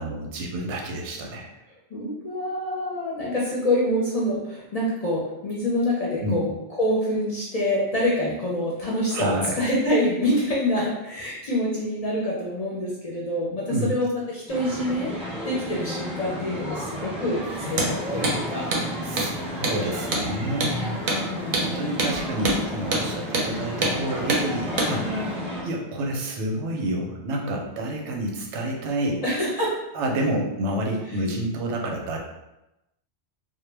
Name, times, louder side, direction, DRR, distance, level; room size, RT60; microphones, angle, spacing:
voice 1, 0.0-1.5 6.2-6.4 9.1-9.6 13.7-13.9 19.1-20.8 21.6-25.0 25.6-29.2 29.9-32.2, right 1 dB, 90° right, 1 dB, 0.9 m, -28 dB
voice 2, 1.9-15.1 15.4-18.7 20.7-21.8 24.9-25.4 29.2-29.7 31.1-31.2, left 1 dB, 50° left, -5 dB, 0.5 m, -26 dB
sound 1, 14.5-25.6, equal, 10° right, 0.3 m, -32 dB
Hammer, 17.7-17.9 18.2-18.4 18.7-18.9 19.2-19.3 19.6-19.8 20.1-20.3 20.6-20.8 21.1-21.2 21.5-21.7 22.0-22.1 22.4-22.6 22.9-23.1 23.3-23.5 23.8-24.0 24.3-24.4 24.8-24.9, right 2 dB, 55° right, 0.6 m, -24 dB
2.1 x 2.1 x 3.1 m, 0.92 s
omnidirectional pair, 1.1 m